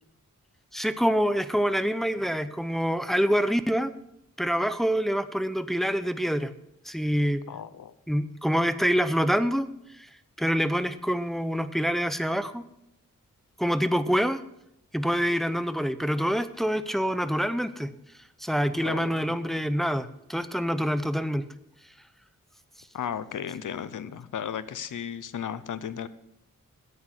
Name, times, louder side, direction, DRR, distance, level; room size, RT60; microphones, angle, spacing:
voice 1, 0.7-3.9 4.4-6.5 6.8-7.4 8.1-9.7 10.0-10.1 10.4-12.6 13.6-14.4 14.9-17.9 18.4-21.5, equal, ahead, 11 dB, 0.6 m, -26 dB
voice 2, 7.5-7.9 18.8-19.4 22.9-26.1, left 8 dB, 70° left, 14 dB, 0.8 m, -35 dB
9.8 x 8.1 x 6.4 m, 0.80 s
wide cardioid pair, 95°, 32 cm